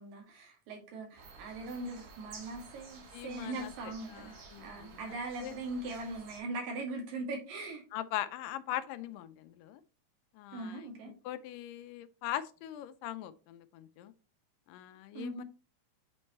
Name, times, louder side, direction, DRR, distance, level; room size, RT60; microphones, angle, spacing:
voice 1, 0.0-4.3 4.6-7.8 10.5-11.1 15.1-15.4, right 2 dB, 90° right, 3.7 m, -40 dB
sound 1, 1.1-6.4, right 4 dB, 70° right, 3.2 m, -53 dB
voice 2, 3.1-5.6 7.9-9.8 10.3-14.1 14.7-15.4, left 13 dB, 90° left, 2.3 m, -41 dB
8.6 x 4.4 x 3.0 m
omnidirectional pair, 3.8 m